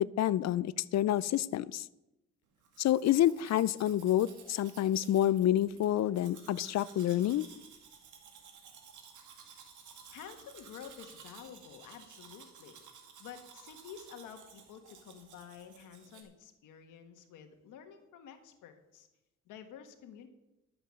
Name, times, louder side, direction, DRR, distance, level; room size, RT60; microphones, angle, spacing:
voice 1, 0.0-1.8 2.8-7.5, left 12 dB, 60° left, 19 dB, 0.5 m, -28 dB
Domestic sounds home sounds, 2.6-16.2, right 6 dB, 75° right, 2.3 m, -55 dB
voice 2, 10.1-12.8 13.2-19.1 19.5-20.3, left 8 dB, 90° left, 7 dB, 1.5 m, -50 dB
11.5 x 7.8 x 6.4 m, 0.94 s
cardioid pair, 90°, 30 cm